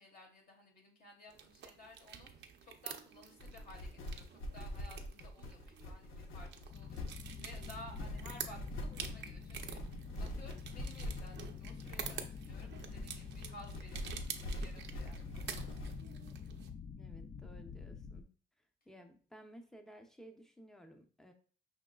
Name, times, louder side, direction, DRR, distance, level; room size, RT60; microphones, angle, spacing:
voice 1, 0.0-15.8, left 1 dB, 50° left, 0 dB, 1.6 m, -56 dB
sound 1, 1.3-16.7, right 8 dB, 60° right, 0.7 m, -49 dB
sound 2, 3.4-16.0, left 1 dB, 85° left, 0.9 m, -44 dB
sound 3, 6.7-18.2, left 6 dB, 30° left, 0.3 m, -48 dB
voice 2, 17.0-18.3 18.9-21.3, equal, ahead, 5 dB, 0.7 m, -56 dB
5.3 x 3.6 x 2.3 m, 0.40 s
cardioid pair, 90°, 20 cm